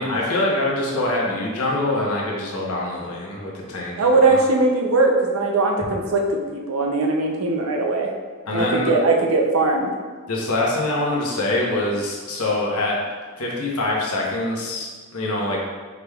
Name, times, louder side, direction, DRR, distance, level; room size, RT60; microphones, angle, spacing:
voice 1, 0.0-4.4 8.5-8.9 10.3-13.0 13.4-15.6, left 2 dB, 85° left, -3 dB, 0.9 m, -24 dB
voice 2, 4.0-6.4 6.7-8.1 8.5-9.9 11.0-11.1, right 3 dB, 70° right, 1 dB, 0.6 m, -20 dB
4.8 x 3.4 x 2.3 m, 1.4 s
head